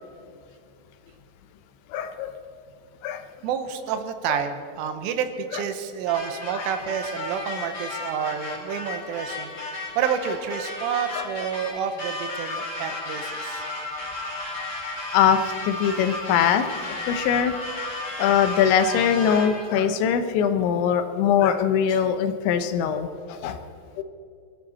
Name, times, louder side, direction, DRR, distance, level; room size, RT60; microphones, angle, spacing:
voice 1, 1.9-2.3 3.0-3.2 4.3-4.4 5.5-5.6 6.5-6.6 11.1-11.2 12.5-12.6 15.1-16.7 17.1-17.6 18.2-23.6 24.0-24.1, left 8 dB, 80° left, 9 dB, 3.0 m, -22 dB
voice 2, 3.4-13.6, right 8 dB, 90° right, 8 dB, 3.6 m, -29 dB
sound 1, 6.1-19.7, left 2 dB, 15° left, 3.9 m, -34 dB
24.0 x 14.0 x 4.3 m, 2.5 s
omnidirectional pair, 5.6 m